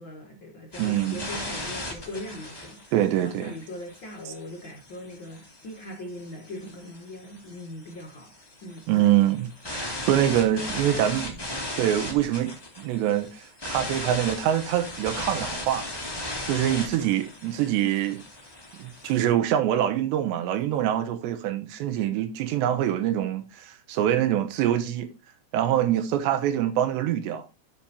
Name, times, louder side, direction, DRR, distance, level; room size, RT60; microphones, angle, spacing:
voice 1, 0.0-2.9 3.4-8.3 8.6-8.8, left 1 dB, 85° left, 1.0 m, -40 dB
sound 1, 0.7-19.2, left 1 dB, 35° left, 0.4 m, -37 dB
voice 2, 0.8-1.3 2.9-3.5 8.9-11.4 11.8-12.5 12.8-15.9 16.4-18.2 18.8-25.1 25.5-27.5, right 11 dB, 85° right, 3.3 m, -25 dB
12.0 x 7.3 x 2.8 m
omnidirectional pair, 4.9 m